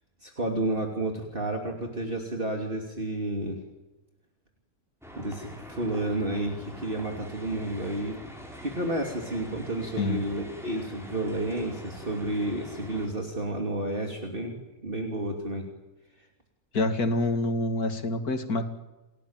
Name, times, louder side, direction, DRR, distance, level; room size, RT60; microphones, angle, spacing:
voice 1, 0.2-3.6 5.1-8.1 8.6-15.6, right 1 dB, 35° right, 2 dB, 3.2 m, -31 dB
sound 1, 5.0-13.1, equal, ahead, 7.1 m, -44 dB
voice 2, 16.7-18.7, left 2 dB, 90° left, 7 dB, 2.9 m, -27 dB
30.0 x 19.0 x 9.0 m, 1.1 s
omnidirectional pair, 1.5 m